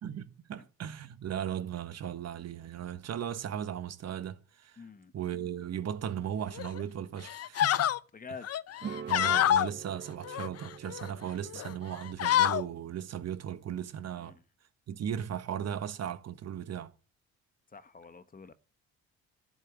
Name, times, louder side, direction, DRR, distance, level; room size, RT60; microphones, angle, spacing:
voice 1, 0.0-4.8 5.1-7.9 9.1-14.4 14.9-16.9, right 9 dB, 55° right, 1.3 m, -37 dB
voice 2, 4.8-5.1 8.1-8.5 14.2-14.4 17.7-18.5, left 5 dB, 30° left, 1.1 m, -47 dB
sound 1, 6.6-6.8 7.2-8.0 8.4-9.7 10.2-11.1 11.5-11.7 12.0-12.6, left 11 dB, 50° left, 0.6 m, -27 dB
sound 2, 8.8-14.0, right 7 dB, 35° right, 0.7 m, -46 dB
11.0 x 6.3 x 9.1 m
cardioid pair, 85°, 31 cm